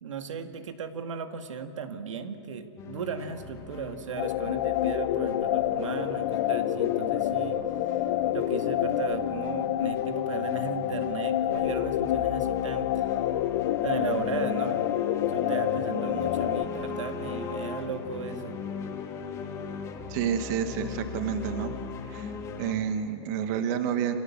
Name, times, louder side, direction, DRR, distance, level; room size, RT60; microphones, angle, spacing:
voice 1, 0.0-8.1 8.3-13.1 13.8-14.9 15.3-18.6, right 6 dB, 80° right, 7 dB, 2.2 m, -36 dB
sound 1, 2.8-22.7, left 5 dB, 20° left, 1.9 m, -39 dB
sound 2, 4.2-16.7, left 12 dB, 45° left, 1.0 m, -28 dB
voice 2, 20.1-21.7 22.1-22.3 22.6-24.2, right 8 dB, 35° right, 8 dB, 1.5 m, -29 dB
28.5 x 25.5 x 7.4 m, 2.8 s
hypercardioid pair, 160°, 16 cm